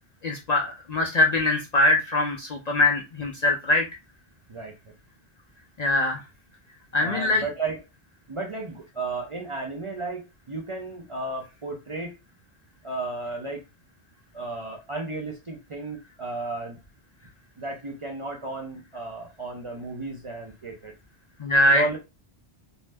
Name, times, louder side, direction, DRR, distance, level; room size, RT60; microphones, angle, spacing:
voice 1, 0.2-3.8 5.8-6.2 6.9-7.4 21.4-21.8, left 1 dB, 55° left, 1 dB, 0.5 m, -22 dB
voice 2, 7.0-7.8 8.3-12.1 12.8-13.6 14.3-16.8 17.6-20.9 21.7-22.0, right 3 dB, 40° right, 0 dB, 0.5 m, -33 dB
2.7 x 2.1 x 3.3 m, 0.25 s
omnidirectional pair, 1.1 m